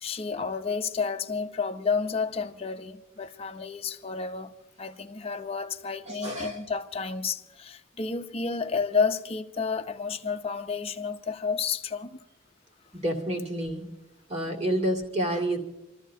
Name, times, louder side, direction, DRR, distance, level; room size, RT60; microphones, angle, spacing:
voice 1, 0.0-4.5 4.8-12.2, left 5 dB, 30° left, 0.7 m, -31 dB
voice 2, 6.1-6.6 12.9-13.9 14.3-15.6, right 1 dB, 30° right, 2.3 m, -29 dB
29.5 x 13.5 x 2.8 m
head